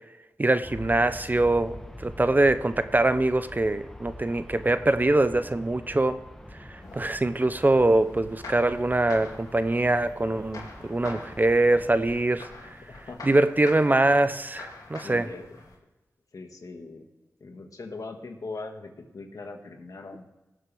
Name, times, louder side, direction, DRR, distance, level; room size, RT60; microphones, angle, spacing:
voice 1, 0.4-6.2 6.9-12.5 13.2-15.3, right 2 dB, 30° right, 12 dB, 0.7 m, -23 dB
Aircraft, 0.6-12.2, left 1 dB, 10° left, 1.2 m, -44 dB
sound 1, 6.8-15.8, left 3 dB, 90° left, 2.3 m, -46 dB
voice 2, 12.8-13.4 15.0-15.4 16.3-17.1 17.4-20.3, left 3 dB, 70° left, 4 dB, 1.7 m, -40 dB
18.0 x 7.6 x 3.4 m, 1.1 s
cardioid pair, 50°, 6 cm